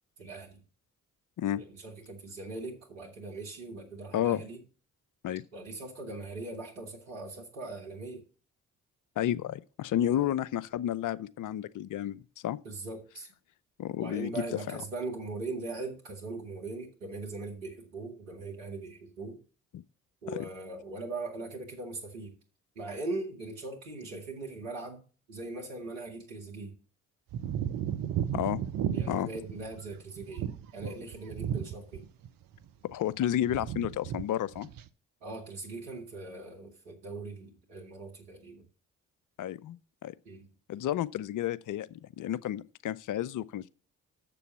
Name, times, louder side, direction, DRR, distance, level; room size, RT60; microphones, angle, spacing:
voice 1, 0.2-0.6 1.6-4.6 5.5-8.2 10.0-10.3 12.6-13.3 14.0-19.4 20.2-22.3 22.8-25.0 25.3-26.8 28.9-32.1 35.2-38.7 40.3-40.5, right 3 dB, 85° right, 1.9 m, -40 dB
voice 2, 9.2-12.6 13.8-14.4 19.7-19.8 28.3-28.6 29.1-29.3 32.8-34.7 39.4-39.8 40.0-40.1 40.7-43.7, left 11 dB, 55° left, 0.6 m, -31 dB
sound 1, 27.3-32.3 32.5-33.2 33.4-34.2 34.5-34.9, right 9 dB, 60° right, 0.8 m, -34 dB
6.9 x 6.9 x 7.1 m
hypercardioid pair, 40°, 38 cm